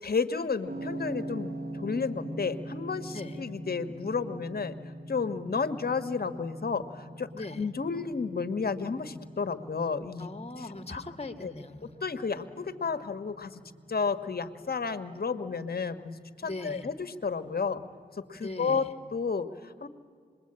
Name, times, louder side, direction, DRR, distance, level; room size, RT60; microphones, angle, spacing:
voice 1, 0.0-4.7 5.1-7.3 7.6-10.3 10.9-11.0 11.4-11.5 12.0-13.6 13.9-17.8 18.2-19.9, left 5 dB, 60° left, 11 dB, 1.4 m, -32 dB
sound 1, 0.7-18.9, right 1 dB, 60° right, 3.7 m, -44 dB
voice 2, 7.3-7.7 10.2-12.0 16.4-16.9 18.4-18.9, left 2 dB, 35° left, 9 dB, 1.8 m, -40 dB
26.5 x 21.5 x 8.8 m, 2.1 s
cardioid pair, 60°, 18 cm